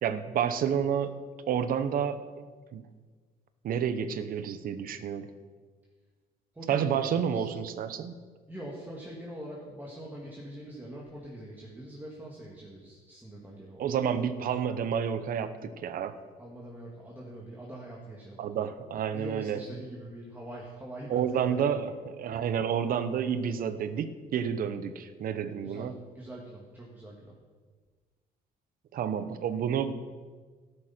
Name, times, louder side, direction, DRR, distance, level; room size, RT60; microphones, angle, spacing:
voice 1, 0.0-1.1 1.5-2.8 3.6-5.3 6.7-8.1 13.8-16.2 18.4-19.6 21.1-26.0 28.9-29.9, right 8 dB, 60° right, 12 dB, 1.0 m, -30 dB
voice 2, 6.5-7.6 8.5-13.9 16.4-18.4 19.1-21.9 25.6-25.9 26.1-27.3, right 1 dB, 10° right, -4 dB, 2.4 m, -43 dB
13.5 x 11.5 x 4.4 m, 1.5 s
cardioid pair, 110°, 17 cm